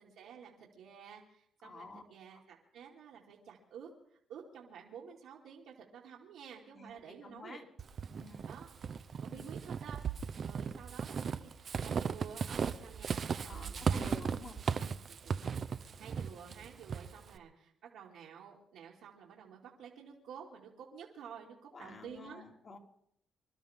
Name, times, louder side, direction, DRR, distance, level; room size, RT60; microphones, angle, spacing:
voice 1, 0.0-3.9 4.3-7.6 8.5-8.7 9.2-14.1 15.1-15.4 16.0-22.4, right 7 dB, 85° right, -6 dB, 2.7 m, -51 dB
voice 2, 1.6-2.0 2.3-2.4 6.7-7.6 8.2-8.5 9.3-9.5 13.5-15.0 21.7-22.8, left 3 dB, 45° left, 2 dB, 2.9 m, -51 dB
Walk footsteps / Squeak, 7.8-17.4, right 6 dB, 50° right, 0.7 m, -37 dB
26.5 x 12.5 x 3.7 m, 0.69 s
cardioid pair, 90°, 0 cm